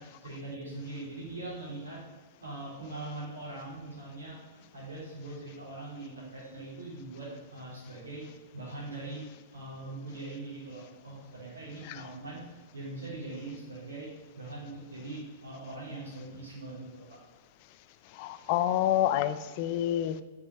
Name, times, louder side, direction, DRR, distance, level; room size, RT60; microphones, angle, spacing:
voice 1, 0.0-2.0 2.4-8.3 8.5-9.3 9.5-12.5 12.7-14.1 14.4-17.2, right 2 dB, 75° right, -5 dB, 3.0 m, -42 dB
voice 2, 18.2-20.2, left 12 dB, 45° left, 13 dB, 0.6 m, -28 dB
7.6 x 7.3 x 5.6 m, 1.3 s
figure-of-eight pair, 100°, 0 cm